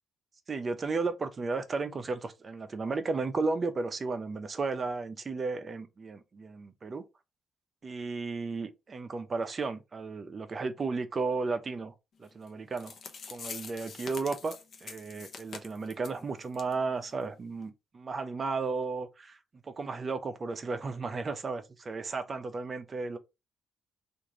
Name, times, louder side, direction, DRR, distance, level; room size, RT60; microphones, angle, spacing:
voice 1, 0.5-7.0 7.8-11.9 12.2-12.9 13.3-19.4 19.6-23.2, right 4 dB, 35° right, 0.6 m, -34 dB
sound 1, 12.5-12.6 12.8-16.2 16.5-16.7 17.0-17.1 17.6-17.7, left 5 dB, 55° left, 0.8 m, -44 dB
3.1 x 2.5 x 3.7 m
cardioid pair, 90°, 0 cm